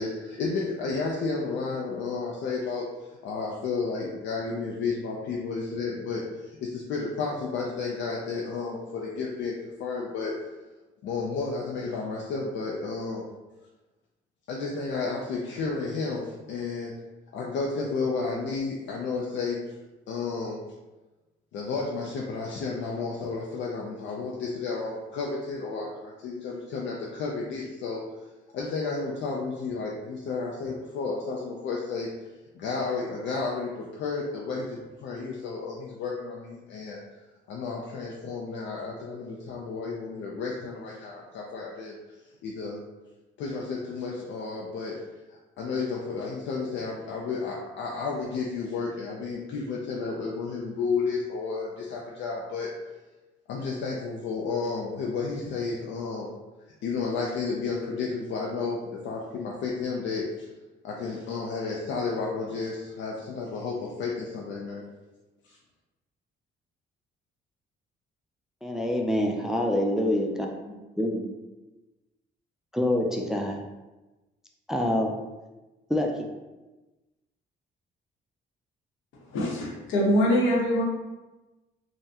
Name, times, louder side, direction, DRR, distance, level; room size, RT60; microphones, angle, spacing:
voice 1, 0.0-2.9 3.2-10.4 11.0-13.3 14.5-16.9 17.3-19.6 20.1-20.6 21.5-28.0 28.5-32.1 32.5-37.0 37.5-42.0 42.4-42.8 43.4-45.0 45.3-52.7 53.5-56.3 56.8-60.5 60.8-64.9 65.4-65.6, left 4 dB, 70° left, -2 dB, 0.5 m, -32 dB
voice 2, 68.6-71.3 72.7-73.6 74.7-75.2 75.9-76.3, left 1 dB, ahead, 1 dB, 0.3 m, -26 dB
voice 3, 79.3-80.8, equal, 85° left, -4 dB, 0.9 m, -23 dB
3.5 x 2.1 x 2.7 m, 1.1 s
cardioid pair, 90°, 20 cm